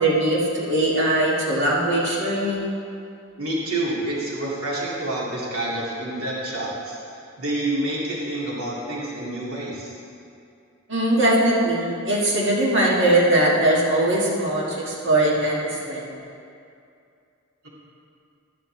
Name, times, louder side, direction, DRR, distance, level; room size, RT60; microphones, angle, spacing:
voice 1, 0.0-2.7 10.9-16.1, right 1 dB, 55° right, -5 dB, 1.9 m, -21 dB
voice 2, 3.4-7.0 7.4-9.9 17.6-17.7, right 1 dB, 85° right, -6 dB, 2.3 m, -28 dB
12.0 x 11.0 x 3.3 m, 2.5 s
head